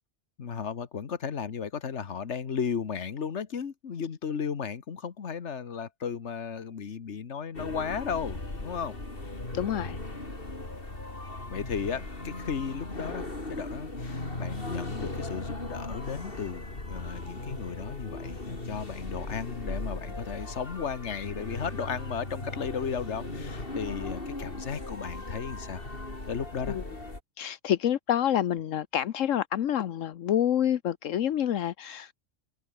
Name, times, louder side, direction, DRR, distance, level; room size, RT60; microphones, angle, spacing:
voice 1, 0.4-9.0 11.5-16.6 16.9-25.8 26.3-26.8, left 6 dB, 65° left, 1.7 m, -35 dB
sound 1, 7.5-27.2, left 2 dB, 45° left, 4.2 m, -38 dB
voice 2, 9.5-10.0 26.7-26.8 27.4-32.1, left 10 dB, 80° left, 1.2 m, -28 dB
omnidirectional pair, 1.3 m